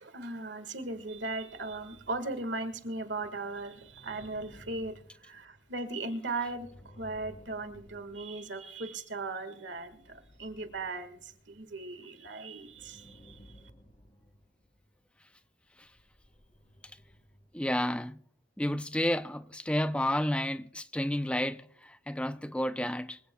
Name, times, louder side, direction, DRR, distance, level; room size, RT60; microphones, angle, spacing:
voice 1, 0.0-13.5, right 2 dB, 80° right, 1.8 m, -38 dB
sound 1, 1.1-9.0 9.6-12.0 12.6-15.1 15.8-17.6, equal, 35° left, 3.2 m, -58 dB
voice 2, 17.5-18.2 18.6-23.2, left 1 dB, 5° left, 0.5 m, -31 dB
25.0 x 16.0 x 2.3 m
head